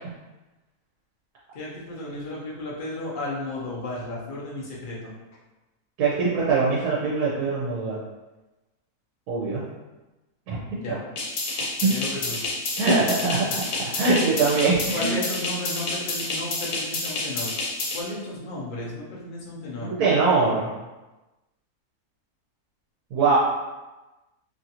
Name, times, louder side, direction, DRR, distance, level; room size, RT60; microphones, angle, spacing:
voice 1, 1.5-5.1 10.8-11.0 11.8-12.5 14.9-17.5 17.9-19.9, left 2 dB, 45° left, -5 dB, 0.7 m, -34 dB
voice 2, 6.0-8.0 9.3-9.6 10.5-10.6 10.9-11.0 11.8-11.9 12.8-15.2 19.9-20.7 23.1-23.4, right 4 dB, 85° right, -6 dB, 1.2 m, -22 dB
sound 1, 11.2-18.0, left 2 dB, 90° left, 1.2 m, -29 dB
3.0 x 2.5 x 2.8 m, 1.1 s
omnidirectional pair, 1.6 m